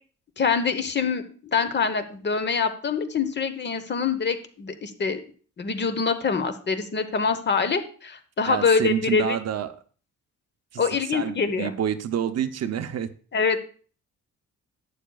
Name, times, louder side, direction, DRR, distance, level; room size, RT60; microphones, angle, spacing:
voice 1, 0.4-5.2 5.6-9.4 10.8-11.7 13.3-13.6, left 5 dB, 35° left, 9 dB, 1.0 m, -25 dB
voice 2, 8.4-9.8 10.7-10.8 11.1-13.1, right 9 dB, 55° right, 11 dB, 0.7 m, -28 dB
11.5 x 8.5 x 2.3 m, 0.42 s
cardioid pair, 135°, 31 cm